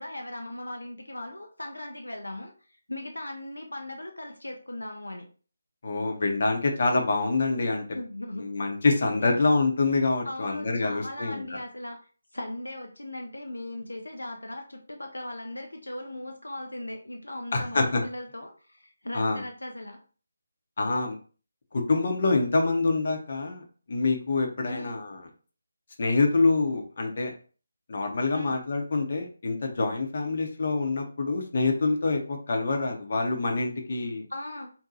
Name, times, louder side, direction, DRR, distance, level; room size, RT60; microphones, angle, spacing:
voice 1, 0.0-2.5 2.9-5.3 7.9-8.5 9.2-9.4 10.2-12.0 12.3-20.0 24.6-25.0 28.3-28.6 34.3-34.7, left 1 dB, 80° left, 3 dB, 0.5 m, -38 dB
voice 2, 5.8-7.8 8.4-11.4 17.5-18.0 19.1-19.4 20.8-21.2 21.7-25.1 26.0-27.3 27.9-34.3, left 3 dB, 45° left, 2 dB, 0.7 m, -26 dB
2.7 x 2.3 x 3.8 m, 0.39 s
figure-of-eight pair, 155°, 0 cm